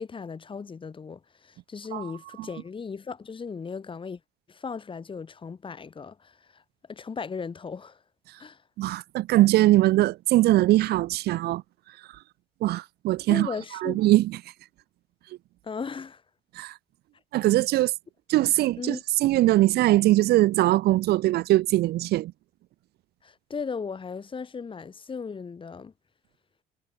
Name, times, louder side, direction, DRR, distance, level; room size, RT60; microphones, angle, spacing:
voice 1, 0.0-4.2 4.5-6.6 6.9-8.0 8.4-8.6 13.3-14.0 15.6-16.2 18.8-19.0 23.2-25.9, left 5 dB, 30° left, 5.5 m, -37 dB
voice 2, 8.8-11.6 12.6-13.5 13.8-14.4 16.6-16.7 17.3-17.9 18.3-22.3, right 16 dB, 70° right, 0.8 m, -21 dB
cardioid pair, 110°, 17 cm